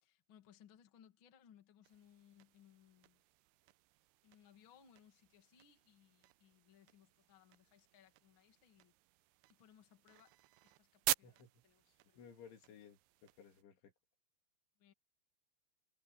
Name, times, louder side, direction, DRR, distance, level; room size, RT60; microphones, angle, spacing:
voice 1, 0.0-3.2 4.2-8.9 9.5-10.4 10.6-12.2 14.8-14.9, left 9 dB, 40° left, 2.0 m, -66 dB
sound 1, 1.8-13.6, right 18 dB, 85° right, 2.3 m, -47 dB
voice 2, 11.9-13.9, left 7 dB, 80° left, 5.6 m, -59 dB
omnidirectional pair, 5.3 m